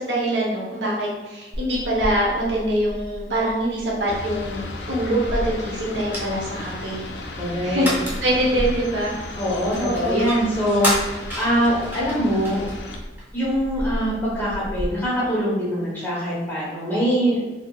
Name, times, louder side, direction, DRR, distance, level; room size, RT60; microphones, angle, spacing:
voice 1, 0.0-4.6 4.9-7.0 7.6-7.9 8.2-9.1 9.8-10.4, right 1 dB, 85° right, -4 dB, 0.9 m, -24 dB
sound 1, 1.5-14.9, equal, 10° right, 0.7 m, -32 dB
sound 2, 4.1-13.0, left 2 dB, 90° left, 0.4 m, -35 dB
voice 2, 7.4-7.9 9.4-12.6 13.3-17.6, equal, 10° left, -8 dB, 1.0 m, -23 dB
3.4 x 2.7 x 2.3 m, 1.1 s
head